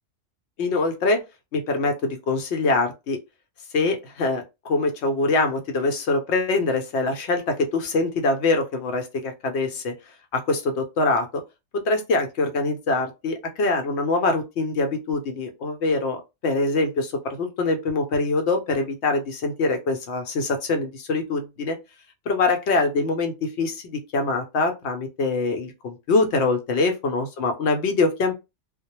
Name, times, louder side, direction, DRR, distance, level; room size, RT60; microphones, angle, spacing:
voice 1, 0.6-1.2 1.5-3.2 3.7-9.9 10.3-11.4 11.7-21.8 22.3-28.3, left 3 dB, 65° left, 0.8 m, -24 dB
2.2 x 2.0 x 2.9 m
omnidirectional pair, 1.3 m